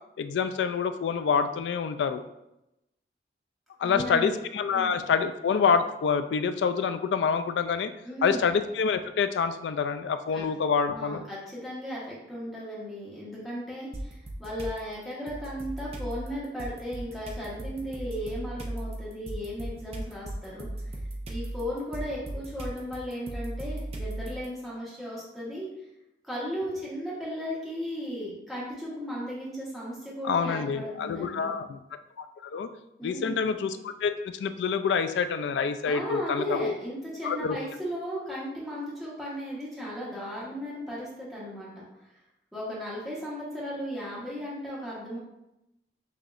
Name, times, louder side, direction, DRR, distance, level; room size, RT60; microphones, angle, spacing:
voice 1, 0.2-2.2 3.8-7.9 8.2-11.2 30.2-31.8 32.2-32.7 33.0-36.7 37.2-37.6, left 6 dB, 85° left, 10 dB, 0.3 m, -27 dB
voice 2, 3.8-4.3 4.7-4.9 8.0-8.5 10.3-10.4 10.9-21.0 21.3-25.7 26.2-31.5 33.0-33.5 35.8-41.8 42.5-45.2, equal, ahead, -8 dB, 1.2 m, -36 dB
sound 1, 13.9-14.8 15.3-24.5, right 1 dB, 35° right, 0.5 m, -37 dB
5.9 x 2.8 x 2.5 m, 0.89 s
head